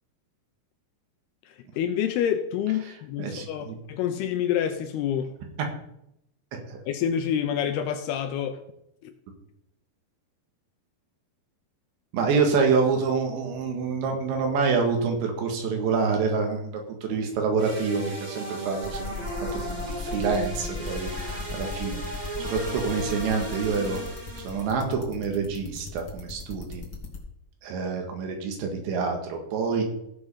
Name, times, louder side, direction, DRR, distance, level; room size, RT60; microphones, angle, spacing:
voice 1, 1.7-5.3 6.9-8.6 9.0-9.1, left 9 dB, 80° left, 7 dB, 2.4 m, -27 dB
voice 2, 3.2-3.8 6.5-6.8 12.1-19.1 19.4-24.0 24.4-26.8 27.6-29.8, right 5 dB, 85° right, 3 dB, 4.0 m, -27 dB
sound 1, 17.6-24.7, right 1 dB, 20° right, 1.7 m, -35 dB
sound 2, 18.8-27.2, left 4 dB, 50° left, 1.2 m, -35 dB
15.5 x 5.3 x 5.6 m, 0.79 s
omnidirectional pair, 5.0 m